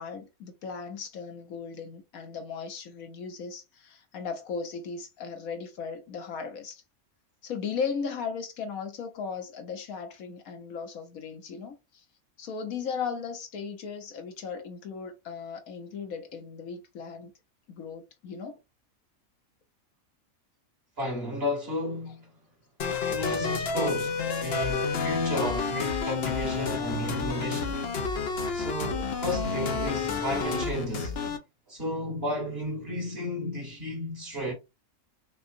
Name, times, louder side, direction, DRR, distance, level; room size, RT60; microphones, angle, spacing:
voice 1, 0.0-6.8 7.4-12.0 12.4-17.3 17.7-18.6, left 6 dB, 75° left, 1.4 m, -37 dB
voice 2, 21.0-22.3 23.0-27.8 28.5-31.2 31.7-34.5, left 1 dB, 45° right, 2.4 m, -33 dB
sound 1, 22.8-31.4, left 4 dB, 55° left, 0.8 m, -30 dB
5.5 x 2.4 x 2.6 m
omnidirectional pair, 1.5 m